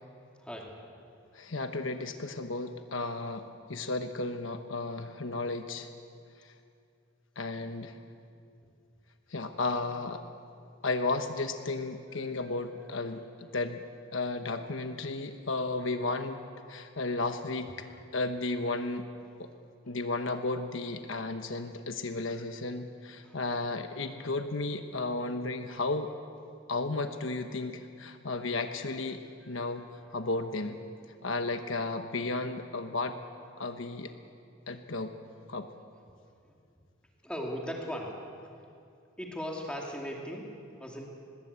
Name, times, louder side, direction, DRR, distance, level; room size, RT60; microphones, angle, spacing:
voice 1, 0.4-0.7 19.2-19.3 19.8-20.0 23.2-23.4 29.4-29.8 37.2-38.3 39.2-41.1, equal, 5° left, -1 dB, 2.5 m, -38 dB
voice 2, 1.3-5.9 7.4-8.0 9.3-10.2 10.8-13.8 14.1-16.4 16.7-17.9 18.1-19.1 19.4-19.5 19.9-26.1 26.7-30.8 31.2-33.2 33.6-34.1 34.7-35.1 35.5-35.7, left 3 dB, 70° left, 7 dB, 1.1 m, -33 dB
22.0 x 20.5 x 8.3 m, 2.4 s
head